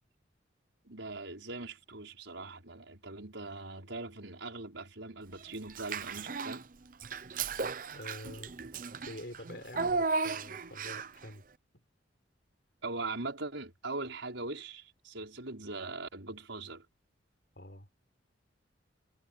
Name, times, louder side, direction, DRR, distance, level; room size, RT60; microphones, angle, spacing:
voice 1, 0.8-6.7 12.8-16.9, right 3 dB, 80° right, 5.5 m, -41 dB
Child speech kid speaking / Bathtub (filling or washing), 5.7-6.6 7.0-11.2, right 4 dB, 45° right, 0.7 m, -35 dB
voice 2, 7.9-8.5 9.0-11.4 11.7-11.8 17.6-17.9, left 1 dB, 55° left, 6.6 m, -46 dB
head